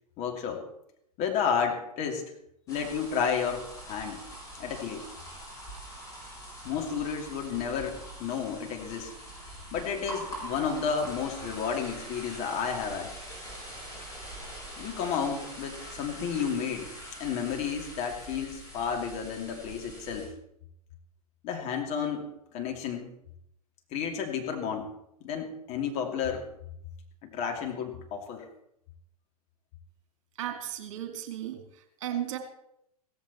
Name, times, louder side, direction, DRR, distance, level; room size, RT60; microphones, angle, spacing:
voice 1, 0.2-0.6 1.2-2.2 2.7-4.2 4.6-5.1 6.6-9.1 9.7-13.1 14.8-16.9 17.2-20.3 21.4-23.1 23.9-24.9 25.2-26.5 27.2-28.5, left 7 dB, 35° left, 2 dB, 2.7 m, -32 dB
sound 1, 2.7-20.3, right 1 dB, 15° left, 7.9 m, -43 dB
voice 2, 30.4-32.4, right 11 dB, 50° right, 5 dB, 2.4 m, -35 dB
16.5 x 15.0 x 4.3 m, 0.77 s
figure-of-eight pair, 100°, 20 cm